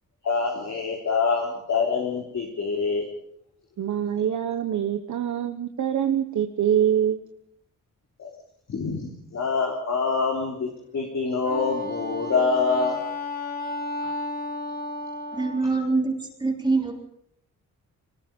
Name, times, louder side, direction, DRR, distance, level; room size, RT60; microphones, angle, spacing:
voice 1, 0.2-3.1 8.2-8.3 8.7-13.0 14.0-14.1, left 4 dB, 60° left, -1 dB, 3.5 m, -25 dB
voice 2, 3.8-7.2, right 9 dB, 70° right, 6 dB, 1.3 m, -24 dB
Wind instrument woodwind instrument, 11.4-15.7, left 1 dB, 30° left, 1.7 m, -32 dB
voice 3, 15.3-16.9, right 3 dB, 15° right, -1 dB, 3.7 m, -24 dB
25.5 x 19.5 x 5.4 m, 0.75 s
wide cardioid pair, 180°, 31 cm